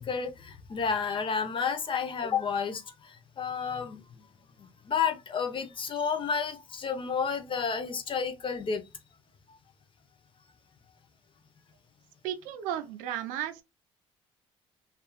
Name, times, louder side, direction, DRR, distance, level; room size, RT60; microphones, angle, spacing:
voice 1, 0.0-4.3 4.6-8.8, left 6 dB, 40° left, 0.6 m, -31 dB
voice 2, 12.2-13.6, right 10 dB, 80° right, 0.5 m, -34 dB
2.8 x 2.4 x 2.2 m
supercardioid pair, 65°, 13 cm